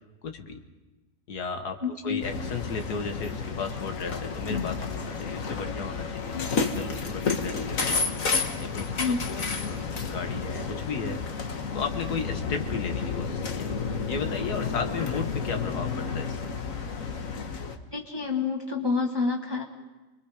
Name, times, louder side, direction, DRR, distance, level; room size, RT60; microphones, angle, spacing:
voice 1, 0.2-0.6 1.3-6.3 6.8-8.0 8.6-8.9 9.3-11.2 11.7-13.7 14.1-16.5, left 5 dB, 85° left, 5 dB, 2.0 m, -34 dB
voice 2, 1.8-2.2 6.3-6.5 9.0-9.2 17.9-19.6, left 4 dB, 15° right, 0 dB, 1.3 m, -28 dB
sound 1, 2.2-17.8, left 5 dB, 60° left, 1.7 m, -31 dB
29.0 x 22.5 x 5.0 m, 1.1 s
omnidirectional pair, 1.6 m